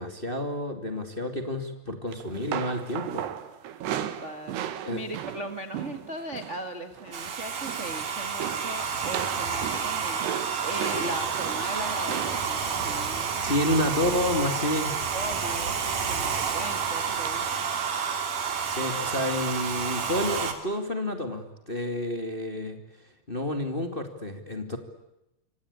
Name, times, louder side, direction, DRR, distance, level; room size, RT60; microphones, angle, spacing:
voice 1, 0.0-3.3 4.8-5.0 13.4-14.9 18.6-22.8 23.3-24.8, left 1 dB, 15° left, 6 dB, 1.9 m, -29 dB
sound 1, 2.1-6.7 6.9-7.3 7.5-8.0 8.4-14.4 15.3-15.7 16.0-16.2 17.3-17.4, right 10 dB, 75° right, 3.8 m, -36 dB
voice 2, 3.9-13.6 14.7-17.7, right 1 dB, 30° right, 6 dB, 1.2 m, -38 dB
Domestic sounds home sounds, 7.1-20.5, right 6 dB, 50° right, 4.3 m, -30 dB
27.5 x 26.0 x 8.5 m, 0.89 s
omnidirectional pair, 4.9 m